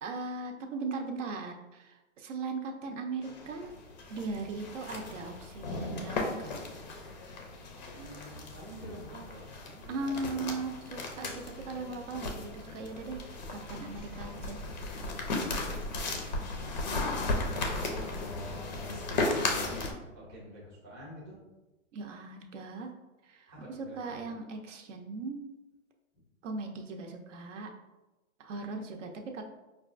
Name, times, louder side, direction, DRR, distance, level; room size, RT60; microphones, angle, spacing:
voice 1, 0.0-3.7 4.1-6.5 9.9-13.2 13.5-14.6 21.9-22.9 23.2-23.5 23.8-25.4 26.4-27.7 28.4-29.4, right 3 dB, 70° right, 4 dB, 0.6 m, -38 dB
sound 1, 3.2-19.9, left 2 dB, 35° left, 0.4 m, -36 dB
voice 2, 7.9-10.5 16.5-18.2 18.5-19.7 20.1-21.4 23.5-24.2, right 1 dB, 10° right, -7 dB, 0.5 m, -49 dB
4.8 x 2.3 x 2.4 m, 1.0 s
hypercardioid pair, 165°, 39 cm